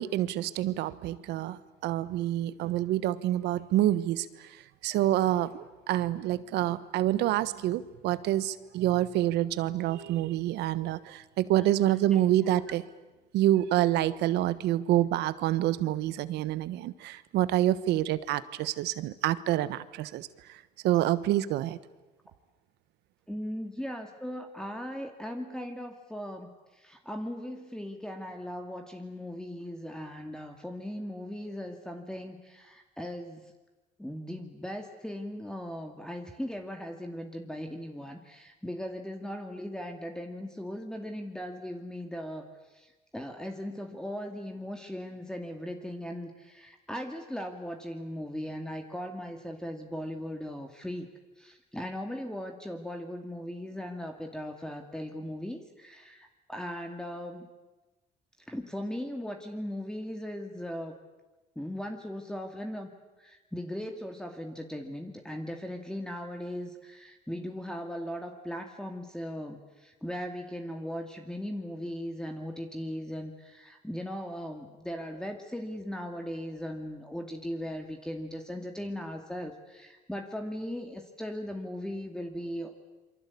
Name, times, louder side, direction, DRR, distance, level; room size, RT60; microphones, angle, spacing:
voice 1, 0.0-4.3 4.8-12.8 13.3-20.3 20.8-21.8, right 13 dB, 85° right, 15 dB, 1.3 m, -27 dB
voice 2, 23.3-33.4 34.0-42.4 42.7-57.5 58.5-60.9 61.6-62.9 63.2-82.7, equal, 5° left, 4 dB, 2.4 m, -38 dB
27.5 x 24.5 x 8.6 m, 1.1 s
cardioid pair, 110°, 17 cm